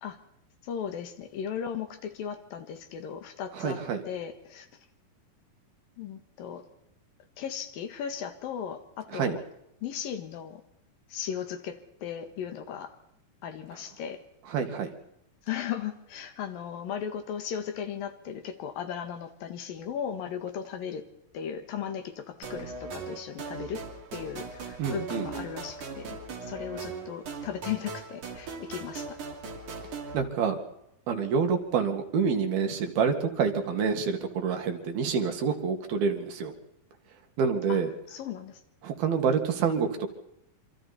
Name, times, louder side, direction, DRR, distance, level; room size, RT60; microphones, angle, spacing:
voice 1, 0.6-4.7 6.0-6.7 7.4-9.4 9.8-10.6 11.1-12.9 13.4-14.2 15.4-21.1 21.3-23.9 24.1-29.2 37.7-37.8 38.1-38.6, left 8 dB, 70° left, 7 dB, 3.4 m, -36 dB
voice 2, 3.5-4.0 9.1-9.4 14.5-14.9 24.8-25.3 30.1-30.6 31.1-36.5 37.4-37.9 38.8-40.1, right 6 dB, 80° right, 5 dB, 4.0 m, -27 dB
sound 1, 22.4-30.2, right 4 dB, 55° right, 4.3 m, -39 dB
27.0 x 25.5 x 4.3 m, 0.82 s
omnidirectional pair, 4.3 m